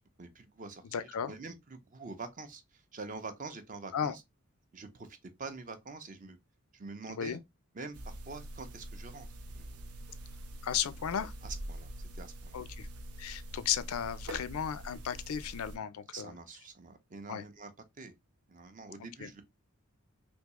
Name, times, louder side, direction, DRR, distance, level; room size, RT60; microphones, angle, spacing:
voice 1, 0.2-4.2 4.7-6.4 6.7-7.4 7.7-9.9 11.4-12.6 16.1-17.7 18.0-18.1 18.5-19.4, right 3 dB, 35° right, 0.5 m, -46 dB
voice 2, 0.9-1.3 3.9-4.1 7.2-7.4 10.6-11.3 12.5-12.9 13.2-16.3 17.3-17.4 19.2-19.3, left 8 dB, 75° left, 0.4 m, -34 dB
sound 1, 7.9-15.8, right 1 dB, 85° right, 0.6 m, -45 dB
3.5 x 2.7 x 2.9 m
head